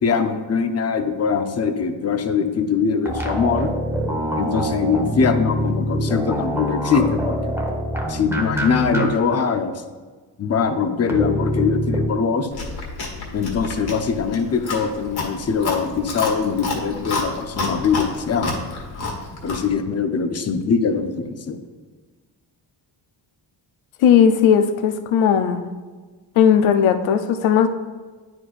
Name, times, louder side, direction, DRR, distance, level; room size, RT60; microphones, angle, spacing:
voice 1, 0.0-3.7 4.4-7.6 8.1-9.7 10.4-12.5 13.3-18.6 19.4-21.6, left 6 dB, 30° left, 7 dB, 0.6 m, -22 dB
sound 1, 3.1-9.1 9.3-9.4 11.1-12.1, equal, 5° right, 1.0 m, -24 dB
Chewing mastication, 12.5-19.7, left 3 dB, 50° left, 1.6 m, -29 dB
voice 2, 24.0-25.6 26.4-27.7, left 8 dB, 75° left, 8 dB, 0.7 m, -16 dB
9.3 x 4.4 x 2.5 m, 1.4 s
cardioid pair, 75°, 48 cm